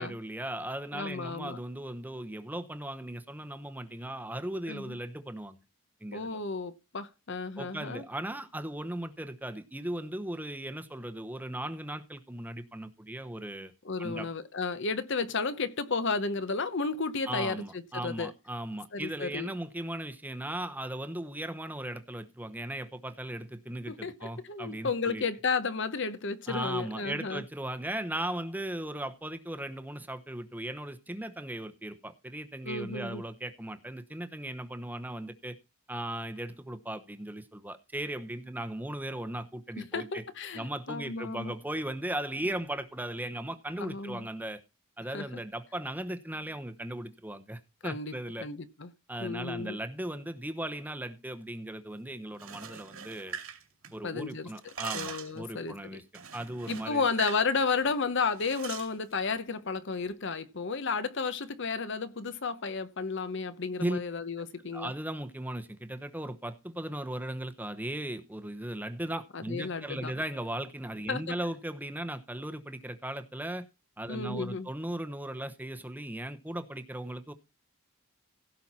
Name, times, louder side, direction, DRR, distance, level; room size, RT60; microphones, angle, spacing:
voice 1, 0.0-5.6 6.0-6.4 7.6-13.7 14.0-14.3 17.3-25.2 26.5-35.6 35.9-40.2 40.5-44.6 45.0-48.5 49.1-53.4 53.9-57.1 63.8-64.0 64.7-73.7 74.0-77.3, right 1 dB, 10° right, 0.9 m, -37 dB
voice 2, 0.9-1.6 4.7-5.0 6.1-8.0 13.8-18.3 18.9-19.5 23.9-27.4 32.6-33.2 39.8-41.5 43.8-44.3 45.1-45.2 47.8-48.1 48.4-48.9 49.2-49.8 54.0-54.5 54.9-56.0 56.7-64.9 69.3-70.1 71.1-71.2 74.1-74.7, left 4 dB, 55° left, 0.9 m, -33 dB
sound 1, 52.3-54.2 54.5-55.4 56.1-57.5 57.7-57.9 58.4-58.9, right 7 dB, 70° right, 2.2 m, -42 dB
16.5 x 5.7 x 4.3 m
head